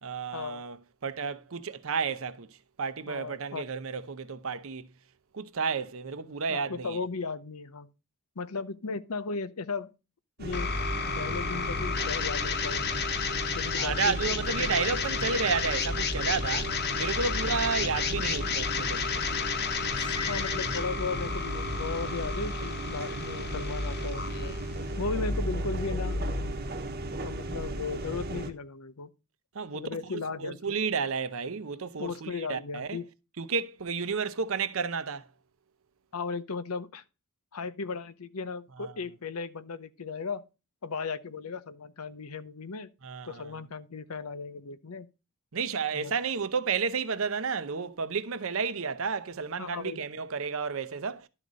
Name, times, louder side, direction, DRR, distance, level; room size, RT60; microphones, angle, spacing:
voice 1, 0.0-2.5 2.8-4.9 5.3-7.0 13.8-19.4 29.5-33.0 33.4-35.3 38.8-39.0 43.0-43.5 45.5-51.3, right 5 dB, 65° right, 0.7 m, -32 dB
voice 2, 3.1-3.7 6.5-7.9 8.4-9.9 10.4-10.7 11.1-12.9 13.5-14.2 14.5-14.7 17.4-17.5 20.3-24.6 25.0-26.3 27.2-29.1 29.7-30.6 32.0-33.1 36.1-37.0 37.5-40.4 40.8-42.9 43.2-45.1 45.9-46.1 49.6-50.0, left 4 dB, 80° left, 0.8 m, -36 dB
sound 1, 10.4-28.5, right 1 dB, 45° right, 1.0 m, -36 dB
sound 2, 10.5-26.5, left 5 dB, 50° left, 0.9 m, -32 dB
Cymbal, 19.9-21.3, left 3 dB, 20° left, 0.5 m, -43 dB
12.0 x 4.0 x 6.2 m
head